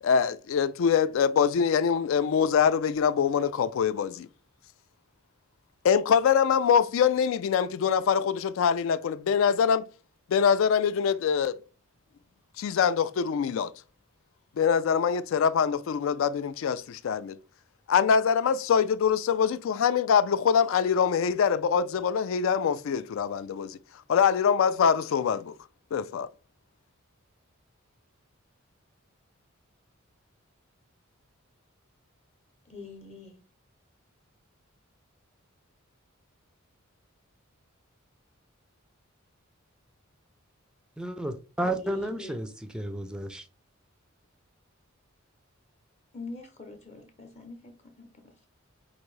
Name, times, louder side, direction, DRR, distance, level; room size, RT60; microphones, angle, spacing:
voice 1, 0.0-4.3 5.8-9.9 10.3-11.6 12.6-13.7 14.6-17.4 17.9-23.8 24.1-25.5 25.9-26.3, left 7 dB, 65° left, 0.3 m, -24 dB
voice 2, 32.7-33.4 41.8-42.4 46.1-48.5, left 2 dB, 30° left, 0.7 m, -44 dB
voice 3, 41.0-43.5, right 1 dB, 5° right, 0.4 m, -32 dB
4.7 x 2.6 x 3.1 m
head